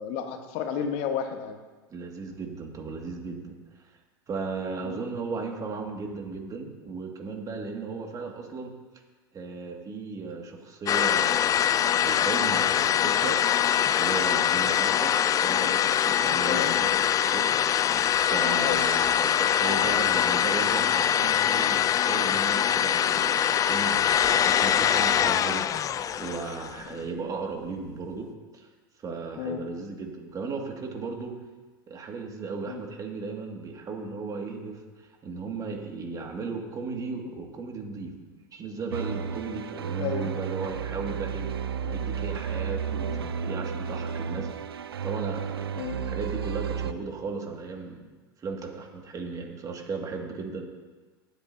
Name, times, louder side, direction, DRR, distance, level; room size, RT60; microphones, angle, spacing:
voice 1, 0.0-1.6 4.8-5.0 16.4-16.7 18.6-18.8 26.9-27.0 29.4-29.6 32.7-32.8 40.0-40.3 41.8-42.0 43.1-43.3 45.8-46.0, left 8 dB, 55° left, 6 dB, 1.5 m, -32 dB
voice 2, 1.9-3.9 4.3-8.7 9.3-13.4 13.9-15.1 15.4-17.4 18.3-28.3 28.5-28.7 29.0-31.3 31.9-38.1 38.5-41.5 41.9-44.7 45.0-48.0 48.4-50.7, right 4 dB, 30° right, 2 dB, 2.1 m, -36 dB
sound 1, 10.9-26.9, left 10 dB, 25° left, 0.4 m, -23 dB
sound 2, 38.9-46.9, right 7 dB, 90° right, 0.5 m, -32 dB
20.5 x 8.2 x 2.8 m, 1.3 s
hypercardioid pair, 95°, 12 cm